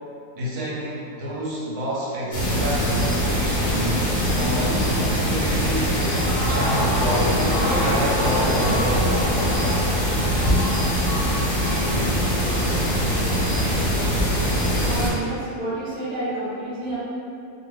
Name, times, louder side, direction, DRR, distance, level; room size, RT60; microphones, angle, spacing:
voice 1, 0.3-4.1 4.4-4.9 5.3-6.2 6.5-7.4 7.7-9.1, equal, 70° right, -6 dB, 1.1 m, -28 dB
sound 1, 2.3-15.1, equal, 65° left, 0.5 m, -22 dB
voice 2, 14.8-17.0, right 1 dB, 45° right, -9 dB, 0.5 m, -29 dB
2.7 x 2.2 x 3.1 m, 2.5 s
omnidirectional pair, 1.7 m